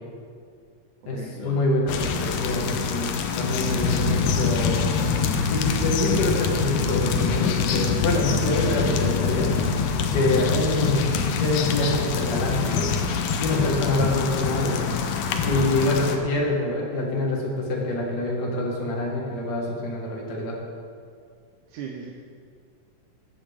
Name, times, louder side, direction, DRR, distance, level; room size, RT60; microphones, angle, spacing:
voice 1, 1.1-4.9 5.5-9.5 10.1-11.1 11.4-12.9 13.4-14.8 15.4-20.6, left 2 dB, 40° left, -2 dB, 1.9 m, -26 dB
sound 1, 1.4-1.6 2.5-2.7 3.3-14.6 15.4-15.6, left 5 dB, 90° left, 1.0 m, -26 dB
sound 2, 1.9-16.2, left 6 dB, 70° left, 1.6 m, -28 dB
voice 2, 21.7-22.1, right 6 dB, 80° right, 1 dB, 2.1 m, -37 dB
14.5 x 8.8 x 3.5 m, 2.2 s
omnidirectional pair, 3.5 m